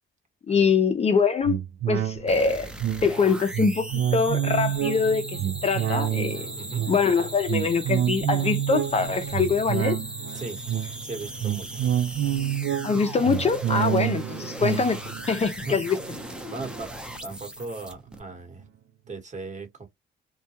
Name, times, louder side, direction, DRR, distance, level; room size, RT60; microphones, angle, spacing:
voice 1, 0.5-1.6 1.9-2.7 3.0-6.5 6.9-10.0 12.8-15.0 15.3-16.0, left 5 dB, 30° left, 0.5 m, -24 dB
sound 1, 1.4-17.2 17.6-17.7, right 10 dB, 70° right, 0.5 m, -29 dB
sound 2, 2.3-18.2, right 1 dB, 5° right, 0.7 m, -38 dB
voice 2, 6.5-6.9 10.3-10.6 11.0-11.9 15.6-15.8 16.5-18.7 19.1-19.9, right 3 dB, 35° right, 1.2 m, -38 dB
2.3 x 2.1 x 2.8 m
cardioid pair, 90°, 20 cm